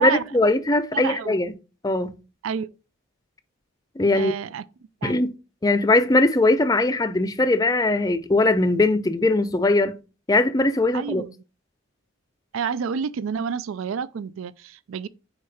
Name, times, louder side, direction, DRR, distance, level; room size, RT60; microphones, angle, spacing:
voice 1, 0.0-1.5 1.8-2.1 4.0-4.3 5.0-5.3 5.6-9.9 10.3-11.2, left 2 dB, 15° left, 0.4 m, -20 dB
voice 2, 0.9-1.4 2.4-2.7 4.1-4.6 5.0-5.2 10.9-11.3 12.5-15.1, right 6 dB, 75° right, 0.4 m, -29 dB
5.0 x 4.6 x 4.1 m
head